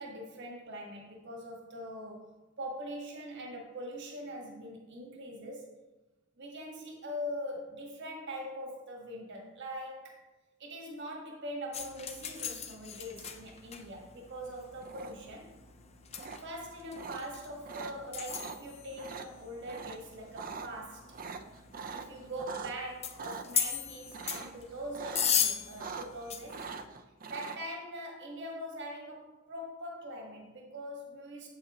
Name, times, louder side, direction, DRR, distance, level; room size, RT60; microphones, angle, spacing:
voice 1, 0.0-5.7 6.4-10.2 10.6-15.5 16.4-21.2 21.9-26.7 27.3-31.5, equal, 60° right, 0 dB, 1.7 m, -42 dB
sound 1, 11.7-26.9, left 7 dB, 30° left, 0.5 m, -38 dB
sound 2, 14.8-15.4 16.2-16.4 16.9-17.2 17.6-17.9 18.3-18.6 18.9-19.3 19.7-20.0 20.2-20.7 21.1-22.7 23.2-23.4 24.1-24.6 24.9-25.4 25.6-26.2 26.5-27.6, right 5 dB, 45° right, 0.5 m, -42 dB
8.1 x 7.9 x 3.0 m, 1.1 s
head